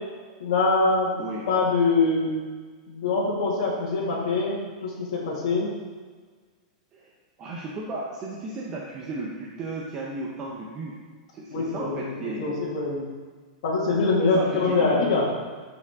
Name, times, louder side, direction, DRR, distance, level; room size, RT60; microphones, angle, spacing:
voice 1, 0.4-1.1 1.5-2.4 2.9-5.7 11.5-12.1 12.4-13.1 13.6-15.3, left 3 dB, 55° left, -7 dB, 2.0 m, -24 dB
voice 2, 7.4-11.0 11.3-12.5 14.2-15.2, right 2 dB, 20° right, -3 dB, 0.7 m, -35 dB
12.5 x 4.9 x 3.6 m, 1.5 s
supercardioid pair, 180°, 4 cm